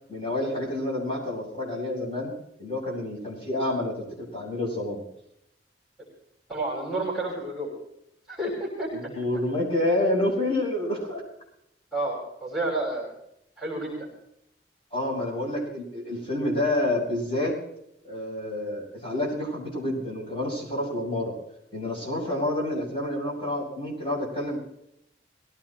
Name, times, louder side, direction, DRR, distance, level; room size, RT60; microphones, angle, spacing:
voice 1, 0.1-2.3 2.6-4.0 4.3-5.0 8.9-11.2 14.9-17.6 18.0-21.3 21.7-24.6, left 1 dB, 35° left, -4 dB, 7.9 m, -28 dB
voice 2, 6.5-7.7 8.3-8.9 11.9-13.1 13.6-14.1, right 2 dB, ahead, -4 dB, 5.8 m, -30 dB
22.0 x 17.0 x 3.2 m, 0.77 s
head